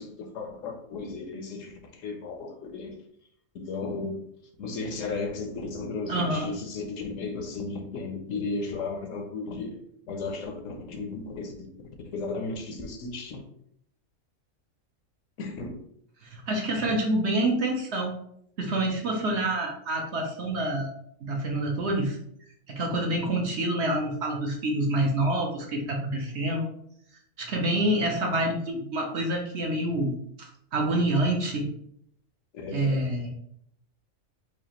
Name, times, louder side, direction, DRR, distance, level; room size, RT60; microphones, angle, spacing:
voice 1, 0.0-3.0 3.5-4.2 4.6-9.8 10.1-11.7 12.0-13.4 15.4-15.8 32.5-33.1, left 3 dB, 70° left, 3 dB, 1.0 m, -35 dB
voice 2, 6.1-6.5 16.2-18.1 18.6-20.9 21.2-22.2 22.7-26.6 27.4-30.1 30.7-31.7 32.7-33.3, right 1 dB, 60° right, 1 dB, 0.9 m, -27 dB
4.8 x 2.4 x 2.9 m, 0.70 s
omnidirectional pair, 1.5 m